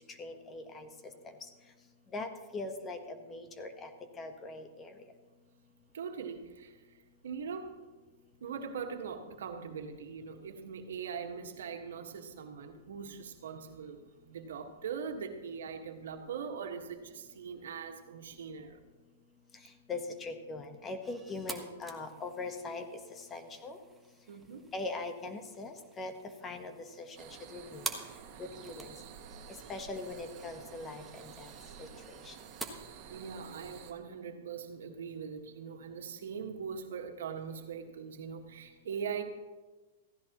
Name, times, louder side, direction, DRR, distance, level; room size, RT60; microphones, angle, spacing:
voice 1, 0.2-0.9 2.1-3.9 4.2-4.9 19.9-22.8 23.3-23.8 24.7-26.1 26.4-26.7 27.0-27.8 28.4-28.9 29.7-31.5 31.8-31.9 32.3-32.4, left 3 dB, 20° left, 7 dB, 1.2 m, -41 dB
voice 2, 5.9-7.8 8.4-18.8 24.3-24.6 33.0-39.2, right 6 dB, 85° right, 4 dB, 1.7 m, -41 dB
sound 1, 21.0-32.7, right 3 dB, 5° right, 1.3 m, -48 dB
sound 2, 27.2-33.9, right 8 dB, 45° right, 2.1 m, -50 dB
15.5 x 15.0 x 3.1 m, 1.3 s
hypercardioid pair, 145°, 0 cm